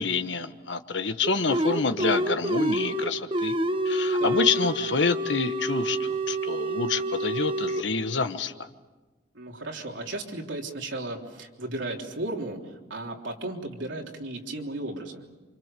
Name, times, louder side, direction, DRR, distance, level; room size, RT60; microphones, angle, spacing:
voice 1, 0.0-3.6 3.8-8.7, left 4 dB, 75° left, 9 dB, 1.3 m, -27 dB
sound 1, 1.2-7.8, right 1 dB, 30° right, 1.1 m, -27 dB
voice 2, 4.2-4.5 9.3-15.2, right 2 dB, 85° right, 1 dB, 3.5 m, -35 dB
28.5 x 26.5 x 6.8 m, 1.2 s
head